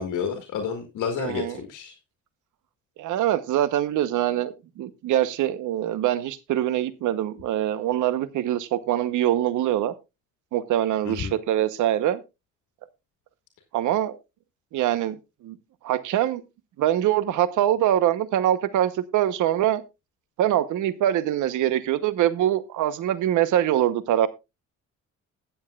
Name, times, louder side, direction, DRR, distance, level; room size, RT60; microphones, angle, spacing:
voice 1, 0.0-1.9 11.0-11.4, left 6 dB, 80° left, 5 dB, 1.6 m, -30 dB
voice 2, 1.2-1.6 3.0-9.9 10.5-12.2 13.7-14.2 14.7-15.2 15.4-15.6 15.8-16.4 16.8-19.8 20.4-24.3, right 12 dB, 80° right, 15 dB, 0.9 m, -24 dB
21.0 x 7.2 x 2.3 m, 0.25 s
cardioid pair, 90°, 30 cm